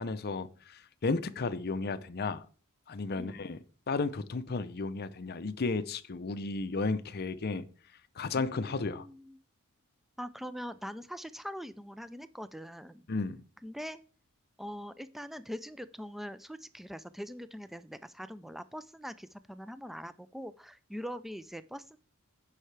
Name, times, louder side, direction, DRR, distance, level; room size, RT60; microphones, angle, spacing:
voice 1, 0.0-2.4 2.9-3.6 3.9-7.6 8.2-9.0 13.1-13.4, left 3 dB, 45° left, 12 dB, 0.6 m, -33 dB
voice 2, 8.3-9.4 10.2-13.1 13.6-14.0 14.6-22.0, equal, ahead, 13 dB, 0.3 m, -43 dB
16.5 x 5.6 x 3.3 m, 0.42 s
head